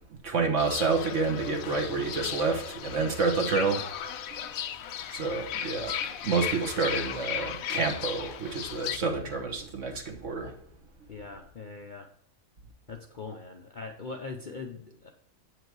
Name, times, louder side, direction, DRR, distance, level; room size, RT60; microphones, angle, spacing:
voice 1, 0.2-4.4 5.1-10.5, right 4 dB, 60° right, 3 dB, 1.6 m, -29 dB
Fowl / Bird, 0.6-9.0, left 9 dB, 75° left, 1.0 m, -36 dB
voice 2, 11.1-12.1 12.9-15.1, left 4 dB, 50° left, 3 dB, 0.6 m, -41 dB
8.1 x 4.9 x 4.6 m, 0.69 s
omnidirectional pair, 1.5 m